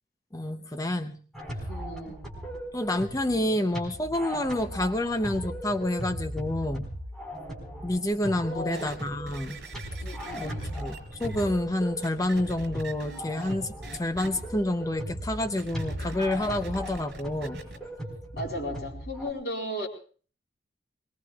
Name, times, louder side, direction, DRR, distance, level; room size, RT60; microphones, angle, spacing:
voice 1, 0.3-1.2 2.7-6.9 7.8-9.6 10.4-17.6, left 1 dB, 20° left, 7 dB, 0.7 m, -29 dB
sound 1, 1.3-19.3, equal, ahead, 4.9 m, -38 dB
voice 2, 1.7-2.2 8.5-8.9 10.0-10.7 18.3-19.9, equal, 60° left, 0 dB, 4.3 m, -35 dB
sound 2, 8.7-11.4 12.0-13.6 13.8-14.3 15.5-17.8 18.4-18.5, right 2 dB, 70° right, 4.7 m, -43 dB
25.0 x 22.0 x 2.4 m, 0.40 s
head